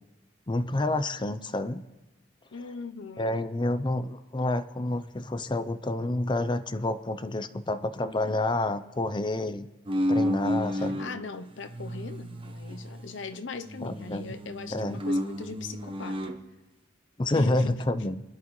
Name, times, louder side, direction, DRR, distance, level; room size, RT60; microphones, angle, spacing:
voice 1, 0.5-1.8 3.2-9.7 10.1-11.0 13.8-14.2 14.7-15.0 17.2-18.2, left 2 dB, 25° left, 0.6 m, -29 dB
voice 2, 2.5-3.4 10.8-16.4 17.3-17.8, left 4 dB, 75° left, 0.7 m, -40 dB
sound 1, 9.9-11.1 11.6-13.4 13.7-16.4, equal, 30° right, 1.0 m, -31 dB
25.0 x 11.0 x 3.2 m
head